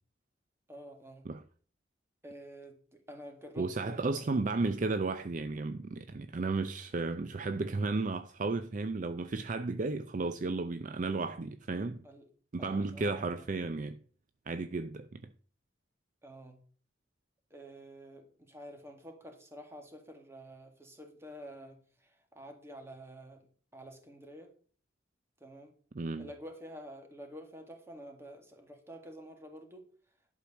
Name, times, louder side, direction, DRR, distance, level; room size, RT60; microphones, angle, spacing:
voice 1, 0.7-1.3 2.2-4.4 12.0-12.3 12.6-13.5 16.2-16.6 17.5-23.5 23.7-24.5 25.4-25.7 26.2-29.9, equal, 15° right, 1.9 m, -49 dB
voice 2, 3.6-12.0 12.5-14.0 14.5-15.3 25.9-26.3, right 3 dB, 45° right, 0.5 m, -33 dB
11.5 x 4.7 x 7.0 m
head